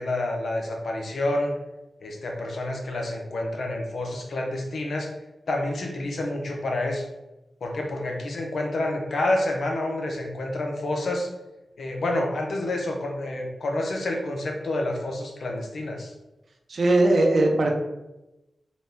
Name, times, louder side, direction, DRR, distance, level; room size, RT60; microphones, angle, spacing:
voice 1, 0.0-1.6 2.0-5.1 5.5-7.1 7.6-11.3 11.8-16.1, left 1 dB, 75° left, 1 dB, 0.7 m, -28 dB
voice 2, 16.7-17.7, right 2 dB, 70° right, 2 dB, 0.7 m, -19 dB
4.1 x 2.3 x 3.3 m, 0.98 s
cardioid pair, 45°, 0 cm